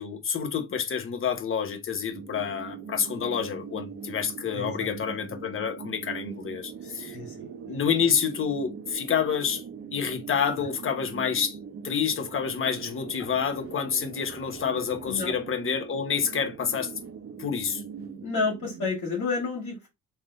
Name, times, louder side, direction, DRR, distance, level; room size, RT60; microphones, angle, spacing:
voice 1, 0.0-7.2 7.7-9.6 9.9-11.6 11.8-16.9 17.4-17.8, left 7 dB, 45° left, 0.9 m, -28 dB
sound 1, 2.1-18.9, right 6 dB, 45° right, 0.7 m, -41 dB
voice 2, 4.5-5.2 6.8-7.8 15.0-15.3 18.2-19.9, left 4 dB, 80° left, 1.7 m, -31 dB
3.5 x 2.7 x 3.9 m
cardioid pair, 90°, 30 cm